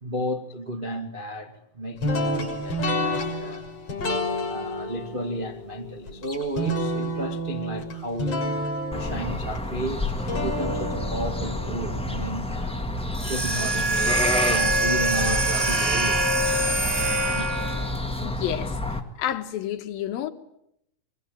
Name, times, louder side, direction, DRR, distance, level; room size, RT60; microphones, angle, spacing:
voice 1, 0.0-3.7 4.4-8.4 8.9-12.8 13.2-16.3 17.3-17.5, equal, 45° right, 0.6 m, -33 dB
sound 1, 2.0-13.1, left 1 dB, 40° left, 7.3 m, -30 dB
sound 2, 8.9-19.0, left 1 dB, 5° left, 0.5 m, -29 dB
sound 3, 13.1-17.9, right 2 dB, 20° right, 2.3 m, -24 dB
voice 2, 18.2-18.8 19.2-20.3, left 11 dB, 75° left, 3.0 m, -29 dB
24.5 x 23.0 x 9.0 m
omnidirectional pair, 4.4 m